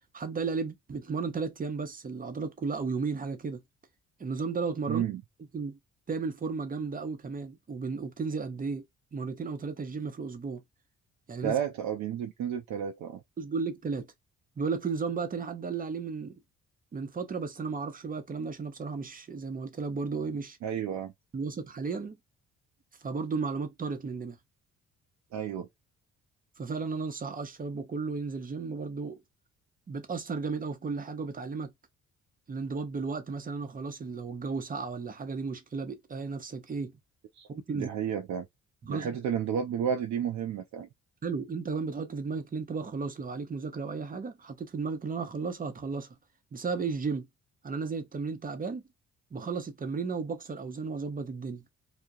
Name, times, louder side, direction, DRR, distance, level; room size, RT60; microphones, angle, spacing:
voice 1, 0.1-3.6 4.2-5.0 5.5-5.8 6.1-8.8 9.1-10.6 11.3-11.5 13.4-14.1 14.6-16.4 16.9-20.6 21.3-22.2 23.0-24.4 26.6-29.2 29.9-31.7 32.5-36.9 37.5-37.9 38.8-39.2 41.2-46.1 46.5-47.3 47.6-48.8 49.3-51.6, right 4 dB, 30° right, 0.7 m, -34 dB
voice 2, 4.9-5.2 11.4-13.2 20.6-21.1 25.3-25.7 37.3-37.5 37.7-38.5 38.9-40.9, right 8 dB, 65° right, 0.5 m, -31 dB
2.3 x 2.1 x 2.5 m
cardioid pair, 90°, 30 cm